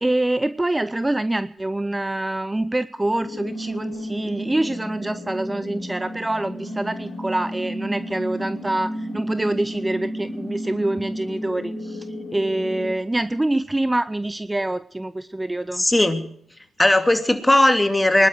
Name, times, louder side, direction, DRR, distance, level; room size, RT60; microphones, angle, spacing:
voice 1, 0.0-12.1 12.3-15.8, right 1 dB, 15° right, 14 dB, 0.7 m, -25 dB
sound 1, 3.2-12.9, equal, 70° left, 4.1 m, -32 dB
voice 2, 15.8-16.2 16.8-18.3, left 1 dB, 15° left, 7 dB, 2.6 m, -17 dB
23.5 x 12.0 x 4.6 m, 0.63 s
hypercardioid pair, 45°, 0 cm